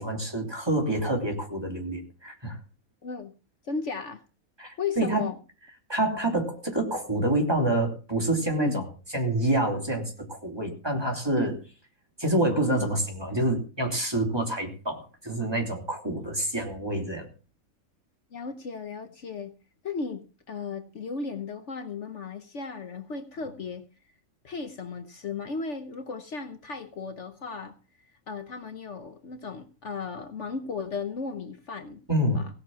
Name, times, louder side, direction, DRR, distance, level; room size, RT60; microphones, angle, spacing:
voice 1, 0.0-2.6 4.6-5.2 5.9-8.8 9.1-11.5 12.2-17.3 32.1-32.4, right 1 dB, 15° right, 1 dB, 3.2 m, -27 dB
voice 2, 3.0-3.4 3.6-4.2 4.8-5.4 8.6-8.8 11.4-11.5 12.7-12.9 18.3-19.6 19.8-23.9 24.4-27.8 28.3-32.0 32.3-32.5, left 4 dB, 60° left, 8 dB, 1.3 m, -35 dB
17.0 x 6.4 x 7.3 m, 0.36 s
omnidirectional pair, 1.5 m